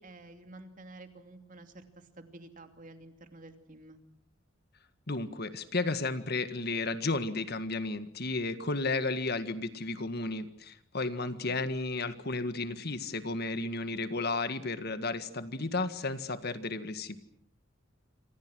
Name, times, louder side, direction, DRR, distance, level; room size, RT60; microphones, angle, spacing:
voice 1, 0.0-4.0 11.2-11.7, right 2 dB, 40° right, 7 dB, 2.8 m, -50 dB
voice 2, 5.1-17.2, left 3 dB, 50° left, 11 dB, 1.8 m, -33 dB
27.5 x 26.0 x 6.3 m, 0.65 s
head